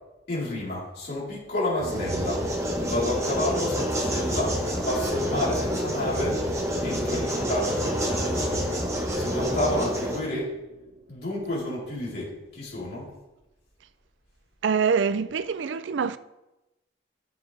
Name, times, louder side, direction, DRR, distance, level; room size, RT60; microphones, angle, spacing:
voice 1, 0.3-2.4 2.8-4.6 4.8-6.4 6.8-8.6 9.1-10.5 11.1-13.1, left 1 dB, 55° left, 3.8 m, -30 dB
sound 1, 1.8-10.2, equal, 15° right, 1.2 m, -28 dB
Radio annoyance, 3.4-8.8, equal, 10° left, 1.7 m, -45 dB
sound 2, 3.6-12.0, equal, 40° right, 1.0 m, -41 dB
voice 2, 14.6-16.2, right 6 dB, 85° right, 0.4 m, -25 dB
12.0 x 7.6 x 3.4 m
head